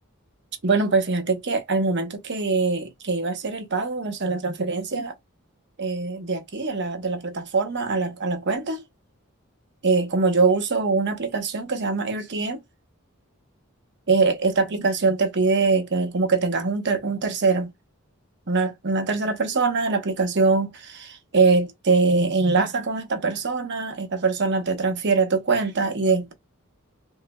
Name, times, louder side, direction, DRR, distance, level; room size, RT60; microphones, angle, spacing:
voice 1, 0.6-5.1 5.8-8.8 9.8-12.6 14.1-17.7 18.5-26.3, right 4 dB, 55° right, 0.8 m, -23 dB
3.1 x 3.1 x 2.2 m
head